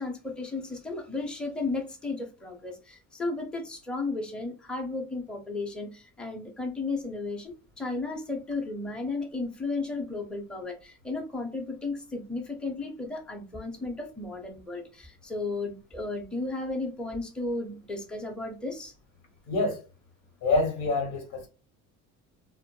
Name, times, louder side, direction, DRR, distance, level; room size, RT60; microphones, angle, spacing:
voice 1, 0.0-18.9, left 3 dB, ahead, 0.6 m, -34 dB
voice 2, 19.5-19.8 20.4-21.5, left 3 dB, 80° left, 1.0 m, -26 dB
2.1 x 2.1 x 3.0 m
supercardioid pair, 70°, 39 cm